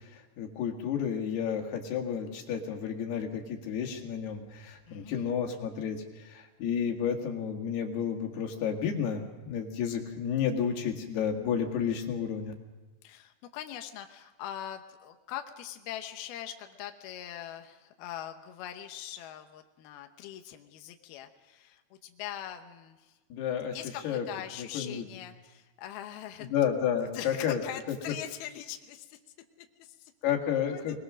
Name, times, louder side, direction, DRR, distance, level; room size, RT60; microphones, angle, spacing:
voice 1, 0.1-12.5 23.3-23.8 24.0-24.3 24.6-25.0 26.4-27.6 30.2-31.0, left 8 dB, 60° left, 3 dB, 3.7 m, -31 dB
voice 2, 4.9-5.3 13.0-23.2 23.7-26.5 27.1-29.2 29.6-30.1 30.7-31.0, left 11 dB, 80° left, 6 dB, 2.2 m, -42 dB
26.0 x 20.5 x 6.3 m, 1.2 s
omnidirectional pair, 5.9 m